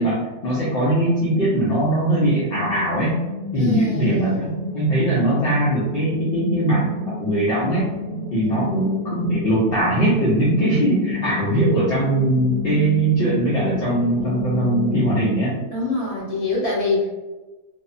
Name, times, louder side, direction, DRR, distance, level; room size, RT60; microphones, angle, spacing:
voice 1, 0.0-3.2 3.5-7.8 8.3-15.5, right 1 dB, 60° left, -8 dB, 0.6 m, -21 dB
sound 1, 2.2-15.3, left 3 dB, 70° right, 0.9 m, -30 dB
voice 2, 3.5-4.7 8.3-8.9 15.7-17.2, left 2 dB, 30° left, -8 dB, 0.9 m, -25 dB
2.8 x 2.1 x 2.4 m, 1.2 s
omnidirectional pair, 1.6 m